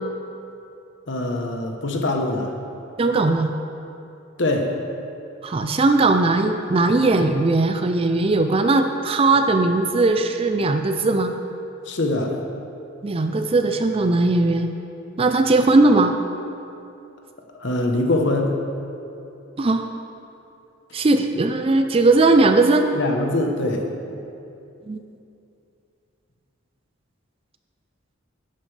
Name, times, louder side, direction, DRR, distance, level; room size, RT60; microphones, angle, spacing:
voice 1, 1.1-2.6 4.4-4.8 11.9-12.4 17.5-18.6 22.9-24.2, left 2 dB, 55° left, 2 dB, 1.0 m, -23 dB
voice 2, 3.0-3.5 5.4-11.3 13.0-14.7 15.2-16.1 19.6-19.9 20.9-22.9 24.9-25.0, right 2 dB, 25° right, 7 dB, 0.3 m, -18 dB
11.0 x 9.8 x 3.3 m, 2.7 s
head